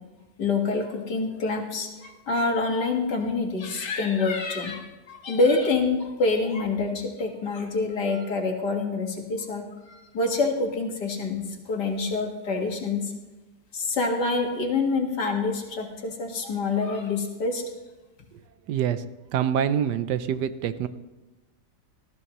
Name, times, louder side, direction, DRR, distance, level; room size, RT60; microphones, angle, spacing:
voice 1, 0.4-4.8 5.1-13.1 13.7-17.6, left 3 dB, 75° left, 2 dB, 2.3 m, -26 dB
voice 2, 18.7-19.0 19.3-20.9, right 9 dB, 80° right, 12 dB, 1.3 m, -25 dB
19.0 x 13.5 x 3.0 m, 1.1 s
omnidirectional pair, 1.8 m